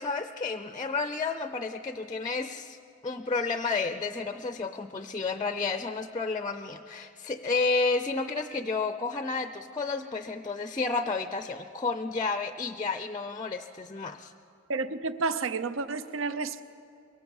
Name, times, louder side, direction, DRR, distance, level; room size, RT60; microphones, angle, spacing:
voice 1, 0.0-2.8 3.0-14.3, left 4 dB, 20° left, 0.5 m, -31 dB
voice 2, 14.7-16.6, right 4 dB, 65° right, 0.7 m, -30 dB
24.0 x 22.0 x 7.2 m
head